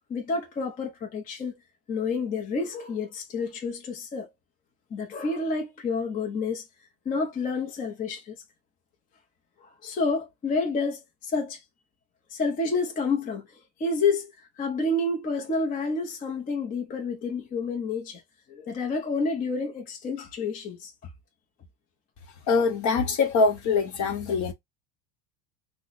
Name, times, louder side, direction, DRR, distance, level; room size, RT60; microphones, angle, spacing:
voice 1, 0.1-1.6 1.9-4.3 4.9-6.6 7.1-8.4 9.6-11.6 12.3-13.5 13.8-14.3 14.6-18.2 18.5-20.9, left 3 dB, 20° left, 0.6 m, -29 dB
voice 2, 22.5-24.5, left 4 dB, 40° left, 1.0 m, -23 dB
3.0 x 2.1 x 3.9 m
supercardioid pair, 140°, 46 cm